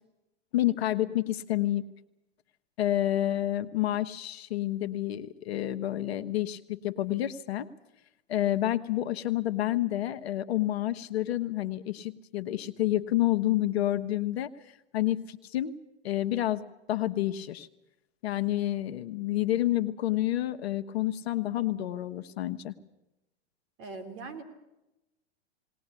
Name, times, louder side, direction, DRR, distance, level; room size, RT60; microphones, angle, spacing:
voice 1, 0.5-1.8 2.8-7.7 8.3-14.5 14.9-15.8 16.0-16.6 16.9-17.7 18.2-22.7, left 14 dB, 65° left, 9 dB, 1.2 m, -29 dB
voice 2, 23.8-24.4, right 3 dB, 40° right, 7 dB, 3.4 m, -40 dB
19.5 x 19.5 x 8.4 m, 0.94 s
hypercardioid pair, 115°, 33 cm